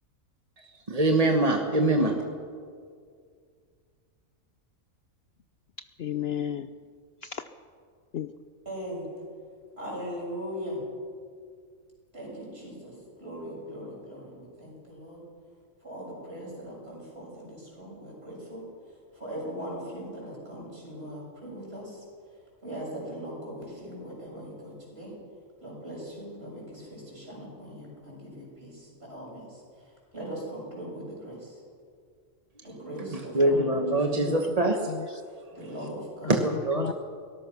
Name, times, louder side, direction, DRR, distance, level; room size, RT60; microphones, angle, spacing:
voice 1, 0.9-2.1 33.1-34.8 36.3-36.9, right 2 dB, 30° right, 3 dB, 1.3 m, -24 dB
voice 2, 6.0-6.7 7.2-7.4 8.1-8.3 33.5-33.6 34.0-34.4 34.9-35.2 36.2-36.9, left 9 dB, 60° left, 10 dB, 0.7 m, -34 dB
voice 3, 8.7-9.1 9.8-10.8 12.1-15.2 15.8-18.6 19.1-22.0 22.6-25.1 25.6-29.6 30.1-31.6 32.6-34.2 35.5-36.4, equal, 45° right, -4 dB, 7.5 m, -40 dB
23.0 x 18.5 x 6.1 m, 2.2 s
omnidirectional pair, 1.4 m